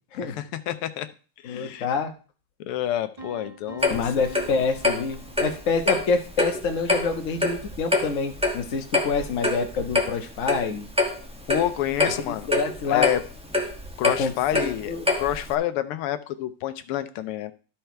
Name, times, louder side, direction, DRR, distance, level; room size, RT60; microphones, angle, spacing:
voice 1, 0.2-1.1 1.4-1.9 2.7-4.1 11.5-12.5 12.9-13.2 14.0-17.5, left 12 dB, 90° left, 11 dB, 1.6 m, -28 dB
voice 2, 1.4-2.1 3.9-10.9 12.3-13.1 14.2-15.1, left 5 dB, 40° left, 5 dB, 1.3 m, -27 dB
sound 1, 3.2-6.1, right 3 dB, 20° right, 1.3 m, -44 dB
Clock, 3.8-15.5, left 2 dB, 5° right, 0.7 m, -26 dB
12.5 x 4.5 x 4.5 m, 0.37 s
omnidirectional pair, 2.4 m